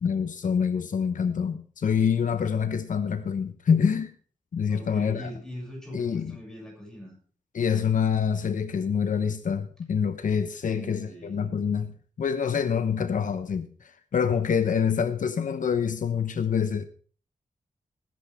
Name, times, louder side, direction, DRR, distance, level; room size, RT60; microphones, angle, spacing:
voice 1, 0.0-4.1 4.5-5.3 5.9-6.3 7.5-11.9 12.2-16.8, left 7 dB, 75° left, 1.0 m, -26 dB
voice 2, 4.7-7.2 10.6-11.4, equal, 5° left, 7.2 m, -41 dB
19.0 x 10.5 x 3.6 m
wide cardioid pair, 140°, 13 cm